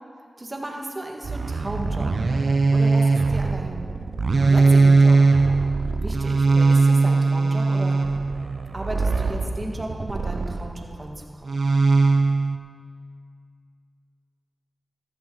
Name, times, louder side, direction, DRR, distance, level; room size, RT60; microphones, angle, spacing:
voice 1, 0.4-2.1 2.7-3.9 4.2-5.2 6.0-8.1 8.7-11.6, right 1 dB, 35° right, 0 dB, 1.9 m, -35 dB
sound 1, 1.2-10.8 11.5-12.6, right 3 dB, 70° right, 0.6 m, -20 dB
14.5 x 11.5 x 4.0 m, 2.2 s
cardioid pair, 45°, 0 cm